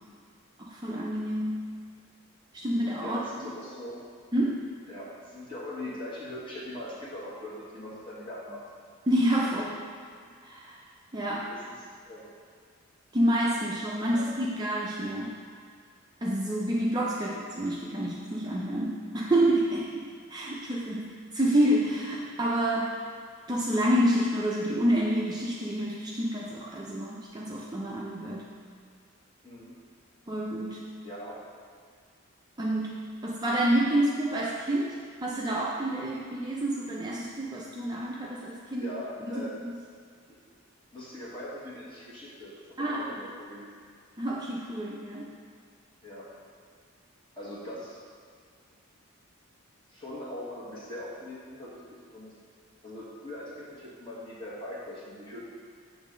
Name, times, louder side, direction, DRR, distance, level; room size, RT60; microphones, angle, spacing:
voice 1, 0.6-1.8 2.5-3.5 4.3-4.6 9.1-9.6 10.4-10.8 11.1-11.5 13.1-15.4 16.2-23.0 23.5-28.5 30.3-30.9 32.6-35.0 35.2-39.0 39.3-39.8 42.8-43.0 44.2-45.3, right 1 dB, 20° right, -5 dB, 0.4 m, -28 dB
voice 2, 3.0-4.0 4.9-8.6 9.6-9.7 11.5-11.7 12.0-12.3 14.1-14.3 15.2-15.4 29.4-29.8 31.0-31.4 38.8-39.6 40.3-40.4 40.9-43.7 46.0-46.3 47.4-48.0 49.9-52.4 52.8-55.4, left 1 dB, 25° left, -8 dB, 1.4 m, -41 dB
7.3 x 3.2 x 5.1 m, 2.1 s
head